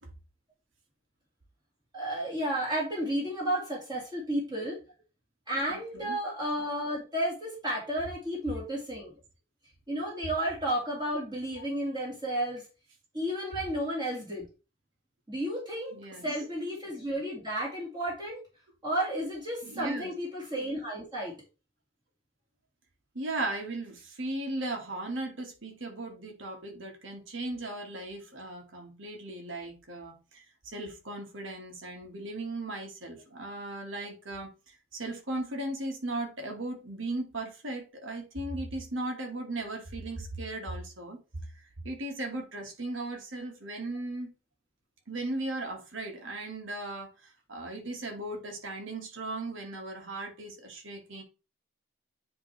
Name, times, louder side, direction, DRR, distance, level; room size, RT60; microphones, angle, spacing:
voice 1, 1.9-4.8 5.5-9.1 9.9-12.6 13.1-14.4 15.3-15.9 16.2-18.4 18.8-21.3, right 1 dB, 20° right, 2.4 m, -32 dB
voice 2, 5.7-6.2 15.9-16.4 19.6-20.1 23.2-30.4 30.7-41.2 41.8-44.3 45.1-47.1 47.5-51.2, right 2 dB, 75° right, 2.0 m, -37 dB
9.6 x 3.6 x 3.3 m
head